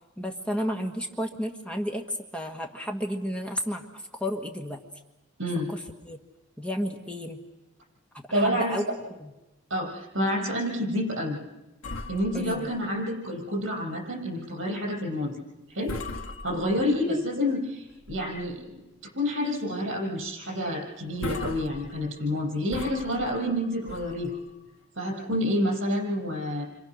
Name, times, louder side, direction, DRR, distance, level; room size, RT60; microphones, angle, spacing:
voice 1, 0.2-4.8 5.7-6.2 6.6-7.4 8.3-9.3 12.3-12.7 17.1-17.2, equal, 5° left, 2 dB, 1.4 m, -32 dB
voice 2, 8.3-8.8 9.7-11.4 12.1-15.3 15.7-15.9 16.4-18.8 19.2-24.4 25.0-26.6, left 1 dB, 75° right, -1 dB, 7.2 m, -28 dB
sound 1, 11.8-13.6 14.0-14.1 14.6-14.9 15.4-15.6 15.9-17.2 17.7-18.5 18.9-19.0 19.5-19.7 20.0-20.1 20.7-20.8 21.1-24.8, left 2 dB, 90° left, 1.4 m, -40 dB
28.5 x 26.5 x 6.4 m, 1.0 s
head